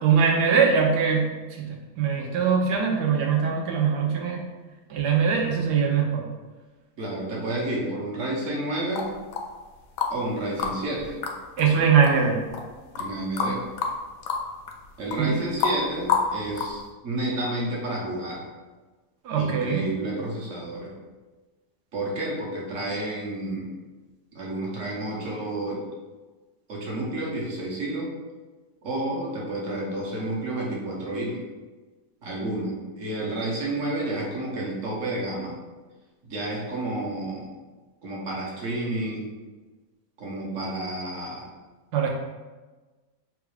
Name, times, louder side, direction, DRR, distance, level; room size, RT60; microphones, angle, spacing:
voice 1, 0.0-4.5 4.9-6.2 11.6-12.4 15.2-15.3 19.2-19.9 41.9-42.1, right 6 dB, 85° right, 1 dB, 1.3 m, -22 dB
voice 2, 7.0-9.1 10.1-11.2 13.0-13.6 15.0-18.5 19.3-20.9 21.9-23.7 24.3-25.8 26.7-28.1 28.8-31.4 32.2-35.6 36.2-37.5 38.0-39.3 40.2-41.5, right 1 dB, 55° right, -3 dB, 1.2 m, -30 dB
sound 1, 9.0-10.2 10.6-16.9, left 6 dB, 85° left, 1.2 m, -28 dB
3.9 x 2.4 x 4.7 m, 1.3 s
omnidirectional pair, 1.7 m